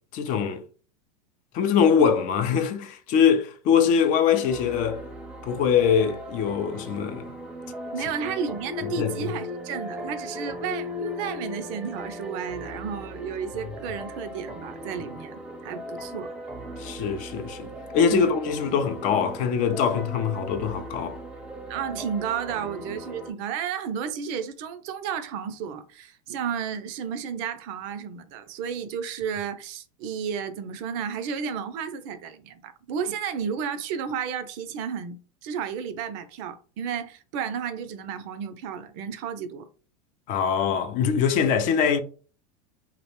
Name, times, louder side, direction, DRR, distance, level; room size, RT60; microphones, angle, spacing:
voice 1, 0.1-0.6 1.5-5.0 5.4-7.3 9.0-9.3 16.8-17.7 17.9-21.2 40.3-42.0, left 7 dB, 45° left, 0.4 m, -23 dB
sound 1, 4.3-23.3, left 1 dB, 5° right, 0.6 m, -38 dB
voice 2, 7.9-16.3 18.0-18.3 21.7-35.2 35.4-39.7, right 7 dB, 55° right, 0.4 m, -32 dB
2.4 x 2.1 x 2.9 m
hypercardioid pair, 105°, 19 cm